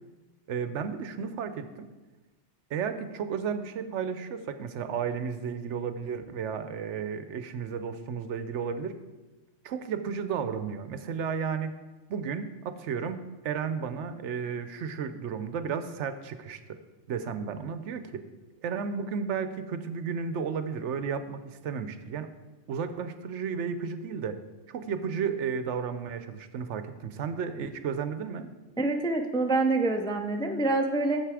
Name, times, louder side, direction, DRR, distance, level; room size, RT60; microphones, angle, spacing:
voice 1, 0.5-1.8 2.7-8.9 9.6-11.7 12.1-13.2 13.4-16.8 17.1-18.2 18.6-22.3 22.7-24.4 24.7-28.5, right 6 dB, 75° right, 10 dB, 1.0 m, -33 dB
voice 2, 28.8-31.2, right 2 dB, 5° left, 4 dB, 0.4 m, -26 dB
9.1 x 7.3 x 4.8 m, 1.2 s
omnidirectional pair, 1.2 m